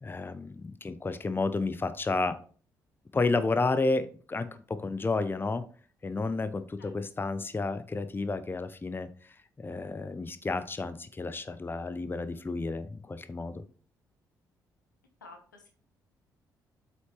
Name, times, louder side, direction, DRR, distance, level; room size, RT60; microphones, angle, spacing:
voice 1, 0.0-2.4 3.1-5.6 6.0-13.6, left 3 dB, 20° left, 12 dB, 0.7 m, -31 dB
voice 2, 15.2-15.7, left 3 dB, 85° left, 4 dB, 1.0 m, -50 dB
7.7 x 5.8 x 3.2 m, 0.41 s
figure-of-eight pair, 40°, 10 cm